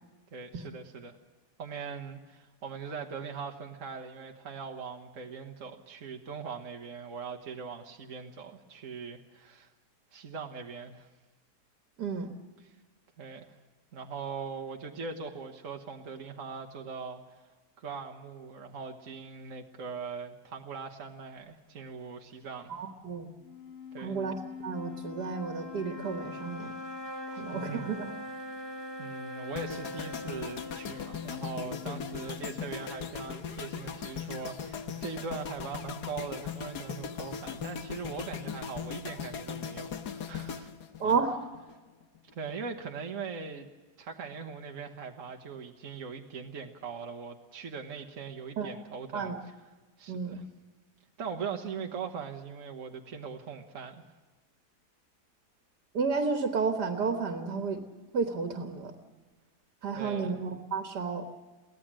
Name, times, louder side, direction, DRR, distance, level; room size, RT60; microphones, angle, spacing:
voice 1, 0.3-1.2 1.6-9.7 10.1-11.1 12.6-12.7 13.2-13.6 13.9-17.2 17.8-22.7 23.9-24.2 27.3-27.9 29.0-40.7 41.0-41.2 42.3-43.7 44.0-49.3 50.0-50.5 51.2-54.1 59.9-60.4, right 5 dB, 55° right, 3 dB, 1.6 m, -41 dB
voice 2, 12.0-12.3 22.7-23.3 24.0-24.4 24.6-26.7 27.3-28.1 41.0-41.4 48.6-48.7 49.1-49.4 50.1-50.4 55.9-57.8 58.1-58.9 59.8-61.2, right 5 dB, 80° right, 5 dB, 2.0 m, -31 dB
sound 1, 23.4-32.8, left 3 dB, 40° left, 2.1 m, -42 dB
sound 2, 29.6-41.7 42.0-42.3, left 7 dB, 75° left, 1.7 m, -39 dB
23.0 x 16.5 x 7.5 m, 1.2 s
omnidirectional pair, 1.7 m